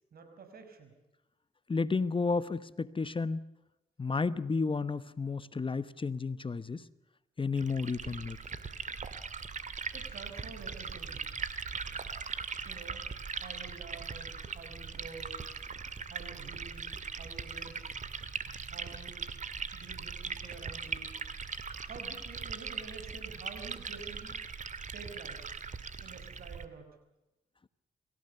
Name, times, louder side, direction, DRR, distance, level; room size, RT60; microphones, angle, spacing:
voice 1, 0.1-0.9 9.9-11.3 12.7-13.1 13.4-15.5 16.1-18.0 18.7-19.2 19.7-21.2 21.8-24.4 24.9-25.6 26.0-26.9, right 4 dB, 65° right, 7 dB, 5.9 m, -49 dB
voice 2, 1.7-3.4 4.0-6.8 7.4-8.4, left 4 dB, 30° left, 15 dB, 1.1 m, -32 dB
Liquid, 7.6-26.7, right 5 dB, 45° right, 2.1 m, -40 dB
28.0 x 16.5 x 6.9 m, 0.94 s
supercardioid pair, 50°, 17 cm